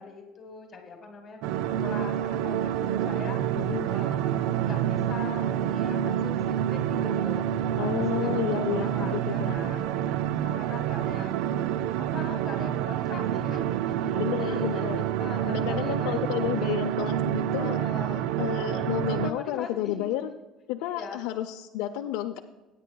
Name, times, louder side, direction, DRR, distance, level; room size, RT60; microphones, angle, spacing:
voice 1, 0.0-3.4 3.8-7.5 7.8-11.3 12.0-17.0 17.6-18.3 18.7-20.3 20.8-21.2, left 4 dB, 25° left, 3 dB, 1.6 m, -42 dB
sound 1, 1.4-19.3, right 10 dB, 70° right, 0.3 m, -28 dB
voice 2, 3.6-3.9 7.8-9.5 14.2-15.0 15.5-17.8 18.4-20.3 20.7-22.4, left 12 dB, 75° left, 5 dB, 0.5 m, -31 dB
16.0 x 9.2 x 2.3 m, 1.1 s
cardioid pair, 175°, 0 cm